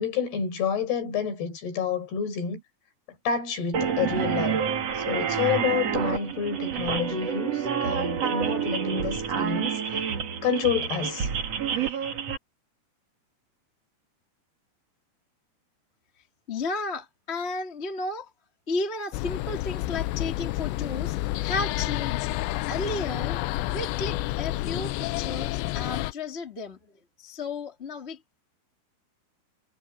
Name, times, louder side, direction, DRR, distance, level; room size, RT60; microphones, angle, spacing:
voice 1, 0.0-2.6 3.3-4.6 5.0-10.1 10.4-11.3, left 7 dB, 65° left, 6.9 m, -29 dB
sound 1, 3.7-12.4, right 7 dB, 45° right, 2.6 m, -28 dB
voice 2, 16.5-18.3 18.7-22.3 22.7-23.4 23.7-26.9 27.2-28.4, left 3 dB, 15° left, 2.6 m, -33 dB
sound 2, 19.1-26.1, left 17 dB, 90° left, 2.9 m, -29 dB
omnidirectional pair, 5.0 m